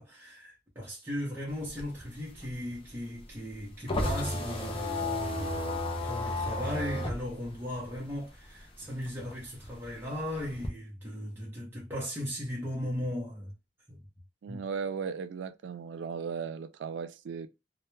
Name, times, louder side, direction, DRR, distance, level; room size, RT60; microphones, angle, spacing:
voice 1, 0.0-13.5 13.9-14.0 14.5-14.6, equal, 10° right, 0.6 m, -37 dB
sound 1, 1.5-8.6 8.9-10.7, left 2 dB, 30° left, 0.5 m, -33 dB
voice 2, 14.4-17.5, right 6 dB, 90° right, 0.3 m, -36 dB
2.1 x 2.1 x 3.0 m
head